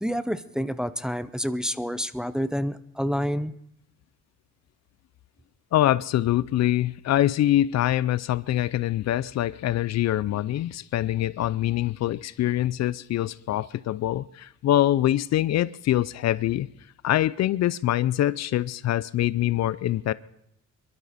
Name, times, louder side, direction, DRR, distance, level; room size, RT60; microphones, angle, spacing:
voice 1, 0.0-3.5, equal, ahead, 0.6 m, -28 dB
voice 2, 5.7-16.7 17.0-20.1, left 13 dB, 60° left, 0.5 m, -24 dB
22.5 x 12.0 x 4.2 m
cardioid pair, 90°, 30 cm